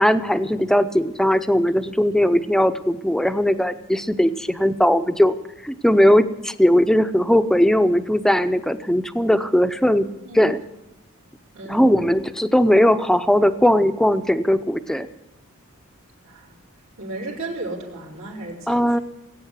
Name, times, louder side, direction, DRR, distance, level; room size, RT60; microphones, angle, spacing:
voice 1, 0.0-5.3 5.6-10.1 10.3-10.6 11.6-15.1 18.7-19.0, equal, ahead, 10 dB, 0.6 m, -18 dB
voice 2, 11.5-12.1 16.2-16.5 17.0-18.8, right 2 dB, 80° right, -5 dB, 4.1 m, -34 dB
18.5 x 8.9 x 8.2 m, 0.92 s
head